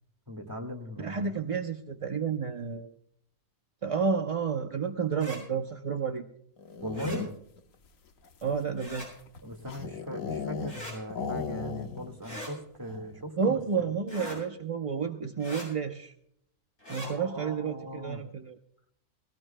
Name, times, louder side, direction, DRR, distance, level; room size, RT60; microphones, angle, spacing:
voice 1, 0.3-1.3 6.8-7.3 9.4-13.9 17.0-18.2, equal, 15° right, 2 dB, 1.7 m, -39 dB
voice 2, 1.0-2.9 3.8-6.2 8.4-9.1 13.4-16.1 16.9-18.6, right 6 dB, 35° right, 4 dB, 0.6 m, -31 dB
sound 1, 5.1-5.4 6.9-7.2 8.8-9.1 10.7-11.0 12.2-12.5 14.1-14.4 15.4-15.7 16.8-17.1, equal, 55° left, 7.5 m, -40 dB
sound 2, 6.6-7.6 8.2-10.8 11.1-12.2 12.4-12.5 12.8-13.2, left 5 dB, 75° left, 1.4 m, -36 dB
19.5 x 18.5 x 2.2 m, 0.71 s
omnidirectional pair, 1.4 m